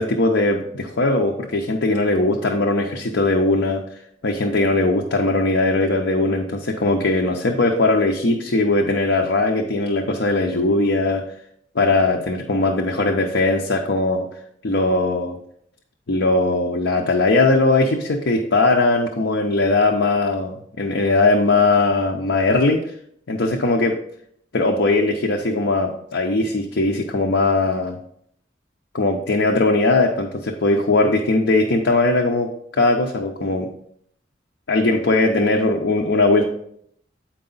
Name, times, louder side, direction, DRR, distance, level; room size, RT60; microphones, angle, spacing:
voice 1, 0.0-3.8 4.2-11.2 11.7-14.3 14.6-15.4 16.1-22.8 23.3-24.0 24.5-28.0 28.9-32.5 32.8-33.7 34.7-36.4, left 2 dB, 75° left, 1 dB, 0.7 m, -19 dB
8.7 x 4.7 x 3.9 m, 0.70 s
head